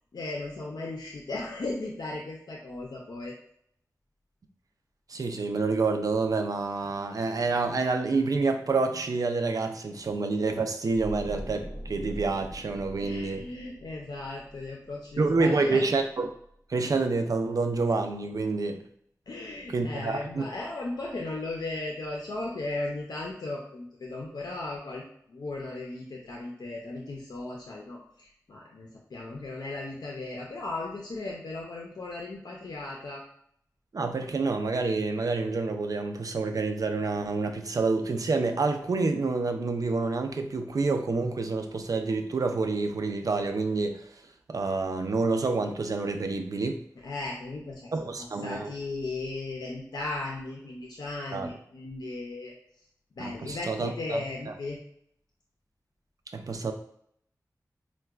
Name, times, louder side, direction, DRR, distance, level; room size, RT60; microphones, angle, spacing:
voice 1, 0.1-3.3 13.0-15.9 19.3-25.0 25.3-33.2 47.0-48.1 48.4-52.5 53.2-54.8, left 2 dB, 85° left, -2 dB, 0.5 m, -36 dB
voice 2, 5.1-13.4 15.2-16.3 16.7-18.8 19.7-20.4 33.9-44.0 44.5-46.8 47.9-48.7 51.3-51.5 53.2-54.2 56.3-56.7, right 3 dB, 60° right, 5 dB, 0.4 m, -28 dB
sound 1, 10.9-16.0 16.3-16.5, equal, 15° left, 0.6 m, -42 dB
4.5 x 2.2 x 2.3 m, 0.68 s
wide cardioid pair, 60°, 7 cm